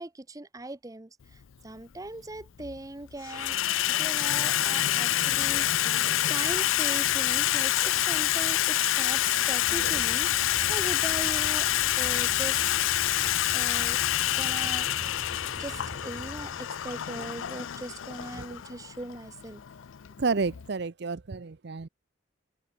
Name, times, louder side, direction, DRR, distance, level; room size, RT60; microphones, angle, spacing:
voice 1, 0.0-3.6 3.9-11.7 12.0-12.6 13.5-14.0 14.4-15.1 15.5-16.5 16.8-19.6, right 2 dB, 20° right, 0.7 m, -40 dB
Water tap faucet / Sink (filling or washing), 1.3-1.4 2.4-2.8 3.1-20.7, left 13 dB, 90° left, 0.5 m, -27 dB
sound 1, 9.6-16.6, left 1 dB, 40° left, 1.7 m, -43 dB
voice 2, 9.7-10.0 18.4-18.5 20.2-21.9, right 4 dB, 60° right, 0.6 m, -31 dB
sound 2, 12.1-18.5, left 1 dB, 20° left, 3.4 m, -60 dB
open air
head